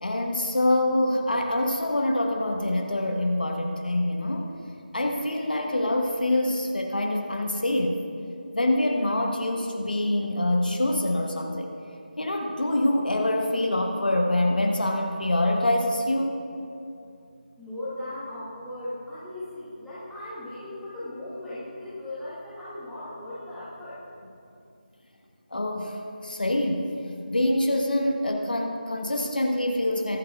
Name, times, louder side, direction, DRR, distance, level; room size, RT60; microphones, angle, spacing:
voice 1, 0.0-4.5 4.9-8.0 8.5-11.7 12.2-16.4 25.5-30.2, left 1 dB, 65° left, 2 dB, 1.3 m, -25 dB
voice 2, 17.6-24.0, left 1 dB, ahead, -14 dB, 1.0 m, -37 dB
22.0 x 7.3 x 2.4 m, 2.5 s
figure-of-eight pair, 160°, 5 cm